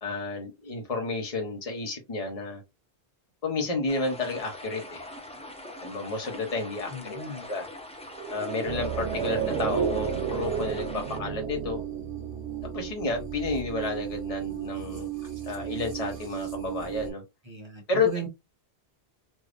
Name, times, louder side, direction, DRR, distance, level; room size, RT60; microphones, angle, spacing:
voice 1, 0.0-2.6 3.4-5.0 5.8-7.7 8.3-11.8 12.6-15.1 15.5-17.2 17.9-18.1, left 3 dB, 35° left, 1.0 m, -31 dB
sound 1, 3.9-11.2, left 1 dB, 10° left, 0.3 m, -43 dB
voice 2, 6.9-7.5 17.5-18.3, right 3 dB, 30° right, 0.8 m, -37 dB
sound 2, 8.1-12.7 12.9-13.0, right 7 dB, 85° right, 1.0 m, -32 dB
sound 3, 8.6-17.1, right 9 dB, 60° right, 1.4 m, -36 dB
3.3 x 2.6 x 2.4 m
omnidirectional pair, 1.1 m